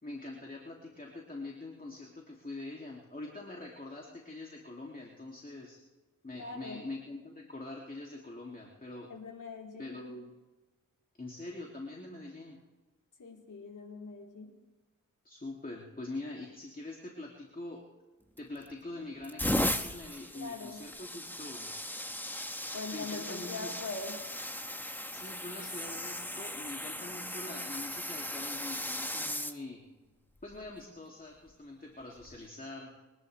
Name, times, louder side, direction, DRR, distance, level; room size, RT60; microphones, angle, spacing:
voice 1, 0.0-5.8 6.2-9.1 9.8-10.3 11.2-12.6 15.2-17.8 18.4-21.7 22.9-23.7 25.1-29.8 30.4-32.9, left 2 dB, 25° left, -1 dB, 2.6 m, -44 dB
voice 2, 6.3-6.8 9.1-10.0 13.2-14.6 20.3-20.8 22.7-24.2, left 3 dB, 65° left, -1 dB, 3.9 m, -42 dB
sound 1, 18.4-18.7 19.2-29.6 30.4-30.7 32.2-32.4, left 1 dB, 5° left, 1.1 m, -37 dB
29.5 x 11.0 x 3.4 m, 1.2 s
cardioid pair, 50°, 33 cm